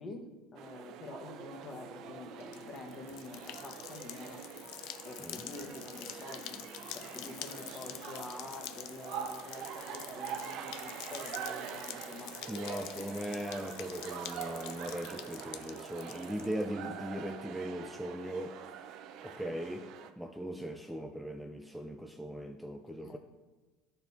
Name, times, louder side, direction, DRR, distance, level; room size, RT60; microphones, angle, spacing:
voice 1, 0.0-4.4 5.0-12.4 23.0-23.2, left 3 dB, 35° left, 3 dB, 1.2 m, -47 dB
Singing, 0.6-8.4, equal, 15° left, 1.6 m, -56 dB
sound 1, 0.6-20.1, right 8 dB, 60° right, 0.5 m, -45 dB
sound 2, 2.4-16.6, left 12 dB, 65° left, 0.4 m, -47 dB
voice 2, 12.5-18.6 19.2-19.9 20.2-23.2, equal, ahead, 4 dB, 0.4 m, -39 dB
11.0 x 4.5 x 3.5 m, 1.2 s
supercardioid pair, 110°, 0 cm